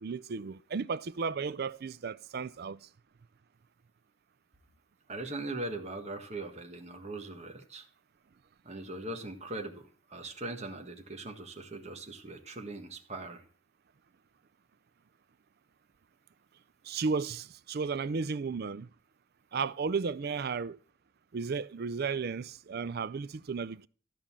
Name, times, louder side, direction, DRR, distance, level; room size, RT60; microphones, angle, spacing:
voice 1, 0.0-2.9 16.8-18.9 19.5-20.8 21.3-23.9, right 5 dB, 45° right, 0.4 m, -34 dB
voice 2, 5.1-7.9 8.6-13.4, right 2 dB, 30° right, 1.5 m, -40 dB
13.0 x 5.3 x 7.3 m
head